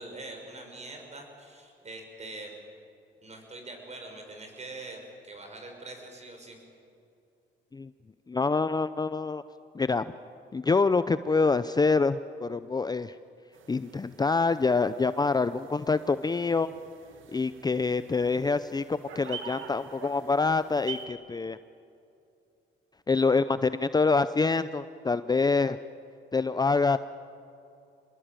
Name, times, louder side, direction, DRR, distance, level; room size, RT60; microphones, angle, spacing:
voice 1, 0.0-2.6 3.2-6.6, right 2 dB, 35° right, 3 dB, 6.4 m, -43 dB
voice 2, 8.3-9.4 9.7-10.1 10.5-13.1 13.7-16.7 17.3-21.6 23.1-25.8 26.3-27.0, left 4 dB, 20° left, 13 dB, 0.6 m, -26 dB
sound 1, 13.5-21.1, right 7 dB, 80° right, 2.3 m, -46 dB
25.0 x 21.0 x 9.1 m, 2.6 s
cardioid pair, 90°, 20 cm